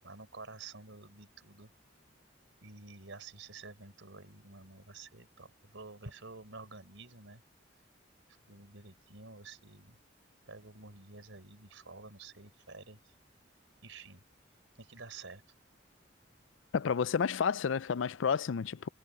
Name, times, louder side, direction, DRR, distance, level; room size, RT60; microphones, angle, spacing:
voice 1, 0.0-1.7 2.6-7.4 8.5-10.0 10.5-13.0 13.8-14.2 14.8-15.4, right 3 dB, 90° right, 4.2 m, -50 dB
voice 2, 16.7-18.9, left 6 dB, 85° left, 0.4 m, -30 dB
head